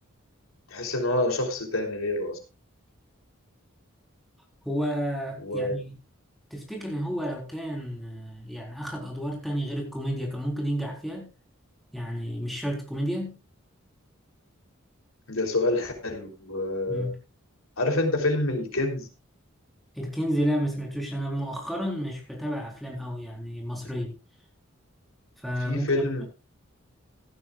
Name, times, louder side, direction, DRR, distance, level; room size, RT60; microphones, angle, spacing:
voice 1, 0.7-2.4 5.4-5.7 15.3-17.1 17.8-19.1 25.6-26.2, left 2 dB, 90° left, 3 dB, 3.4 m, -27 dB
voice 2, 4.6-6.0 6.5-11.3 11.9-13.4 16.9-17.2 19.9-24.1 25.4-26.2, equal, ahead, 0 dB, 4.1 m, -31 dB
16.5 x 12.0 x 2.4 m, 0.30 s
head